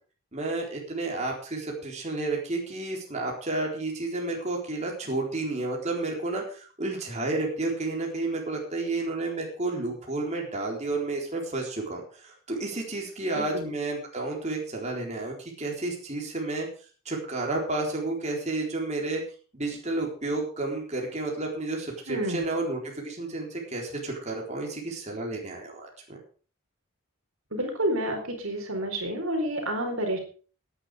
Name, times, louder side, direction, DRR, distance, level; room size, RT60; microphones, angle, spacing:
voice 1, 0.3-16.7 17.1-19.2 19.5-26.2, right 2 dB, 30° right, -1 dB, 4.0 m, -31 dB
voice 2, 22.1-22.4 27.5-30.2, right 1 dB, 65° right, 4 dB, 4.3 m, -29 dB
17.0 x 10.0 x 5.0 m, 0.40 s
head